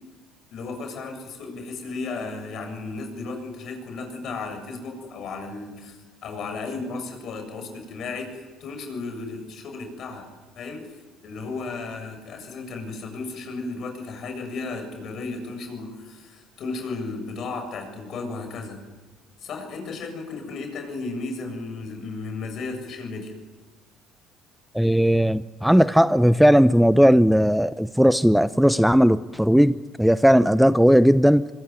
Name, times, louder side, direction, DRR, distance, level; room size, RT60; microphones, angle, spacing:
voice 1, 0.5-10.3 10.5-10.9 11.2-18.8 19.4-23.3, left 3 dB, 55° left, 7.6 m, -34 dB
voice 2, 24.7-31.5, equal, ahead, 0.8 m, -17 dB
25.5 x 23.0 x 9.7 m
hypercardioid pair, 65°, 0 cm